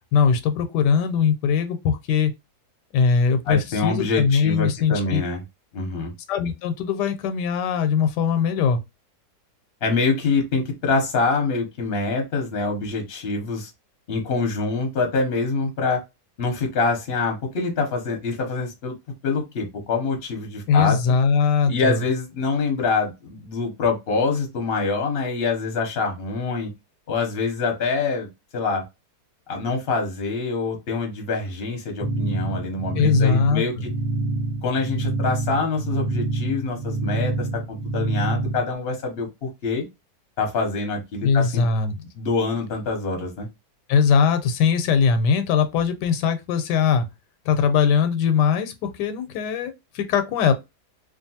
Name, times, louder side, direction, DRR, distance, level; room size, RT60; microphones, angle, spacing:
voice 1, 0.1-2.3 2.9-5.2 6.3-8.8 20.7-22.0 32.9-33.6 41.2-41.9 43.9-47.1 47.5-50.5, left 6 dB, 90° left, 1.2 m, -20 dB
voice 2, 3.5-5.4 5.7-6.1 9.8-13.7 14.1-16.0 16.4-19.0 19.2-21.0 21.7-26.7 27.1-28.8 29.5-33.9 34.6-39.8 40.4-41.6 42.2-43.5, left 4 dB, 55° left, 0.7 m, -25 dB
sound 1, 32.0-38.7, right 2 dB, 55° right, 0.9 m, -27 dB
2.7 x 2.4 x 2.7 m
omnidirectional pair, 1.8 m